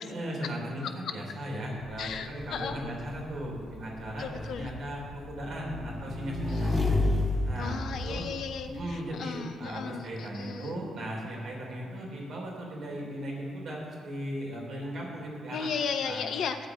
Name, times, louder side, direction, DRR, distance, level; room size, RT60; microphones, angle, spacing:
voice 1, 0.0-6.8 7.4-8.2 8.7-15.7 16.0-16.3, equal, 55° right, -2 dB, 3.3 m, -37 dB
Motorcycle / Engine, 1.9-8.9, left 2 dB, 15° left, 1.6 m, -32 dB
voice 2, 2.0-2.8 4.2-4.7 7.6-8.7 9.2-10.0 10.4-10.7 15.5-16.7, left 6 dB, 55° left, 8 dB, 0.7 m, -34 dB
13.0 x 4.9 x 8.1 m, 2.2 s
figure-of-eight pair, 40°, 0 cm